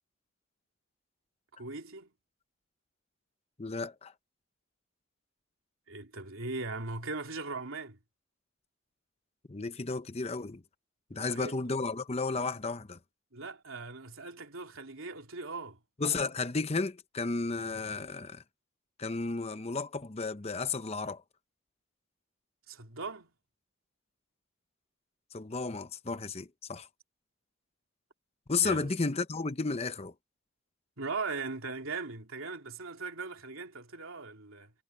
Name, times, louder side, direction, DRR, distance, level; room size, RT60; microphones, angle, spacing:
voice 1, 1.5-2.1 5.9-8.0 11.1-11.6 13.3-15.8 22.7-23.3 28.6-28.9 31.0-34.7, right 3 dB, 85° right, 3.3 m, -39 dB
voice 2, 3.6-4.1 9.5-10.6 11.1-13.0 16.0-18.4 19.0-21.2 25.3-26.9 28.5-30.1, left 4 dB, 30° left, 0.8 m, -33 dB
head